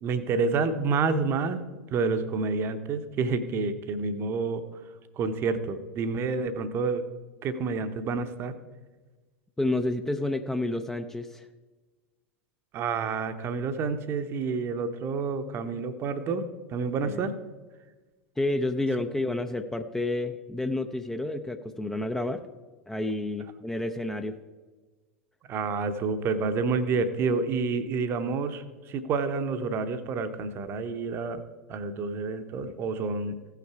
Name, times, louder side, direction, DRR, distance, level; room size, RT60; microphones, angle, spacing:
voice 1, 0.0-1.6 1.9-4.6 5.2-7.0 7.4-8.5 12.7-17.3 25.5-31.4 31.7-33.4, right 4 dB, 35° right, 11 dB, 0.9 m, -29 dB
voice 2, 9.6-11.5 17.0-17.3 18.4-22.4 22.9-24.4, left 2 dB, 5° left, 7 dB, 0.5 m, -30 dB
15.5 x 5.8 x 4.7 m, 1.3 s
figure-of-eight pair, 85°, 7 cm